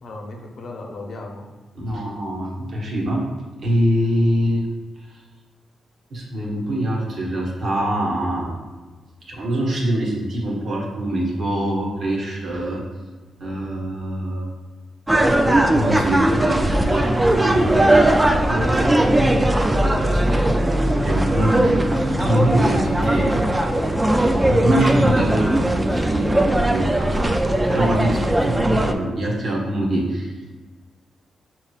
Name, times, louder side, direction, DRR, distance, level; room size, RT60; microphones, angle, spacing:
voice 1, 0.0-1.4 21.4-22.1, left 2 dB, 55° left, 1 dB, 0.8 m, -36 dB
voice 2, 1.7-3.2 3.6-4.7 5.1-5.2 6.1-8.5 9.3-12.8 13.4-14.5 15.7-23.4 24.5-27.3 27.7-30.3, right 1 dB, 55° right, -2 dB, 1.2 m, -24 dB
sound 1, 15.1-28.9, right 1 dB, 10° right, 0.3 m, -19 dB
6.6 x 3.0 x 2.4 m, 1.3 s
cardioid pair, 100°, 0 cm